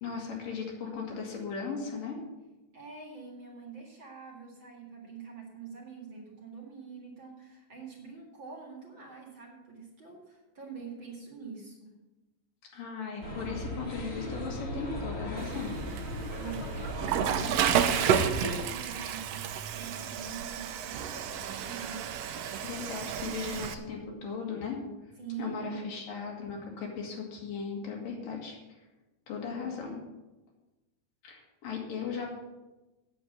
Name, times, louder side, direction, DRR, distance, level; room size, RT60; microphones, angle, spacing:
voice 1, 0.0-2.2 12.7-15.7 22.6-24.8 25.4-28.6 29.3-30.0 31.2-32.4, left 5 dB, 80° left, -1 dB, 3.9 m, -37 dB
voice 2, 2.7-11.9 16.3-22.0 23.2-23.5 25.2-25.8 29.5-29.7, right 5 dB, 40° right, -1 dB, 2.3 m, -45 dB
sound 1, 13.2-18.6, equal, 30° left, 2.1 m, -37 dB
Water / Toilet flush, 15.4-23.7, right 8 dB, 85° right, 1.4 m, -31 dB
8.6 x 8.2 x 8.1 m, 1.1 s
omnidirectional pair, 3.8 m